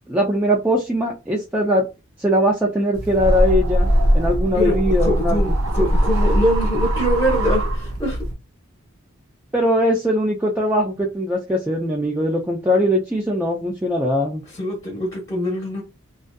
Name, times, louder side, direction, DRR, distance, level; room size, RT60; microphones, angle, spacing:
voice 1, 0.1-1.9 2.2-3.9 4.1-5.5 9.5-14.4, equal, 10° right, 0.3 m, -20 dB
sound 1, 2.9-8.3, equal, 75° right, 0.7 m, -20 dB
voice 2, 4.5-8.2 14.5-15.8, equal, 15° left, 0.8 m, -23 dB
2.5 x 2.3 x 2.2 m
head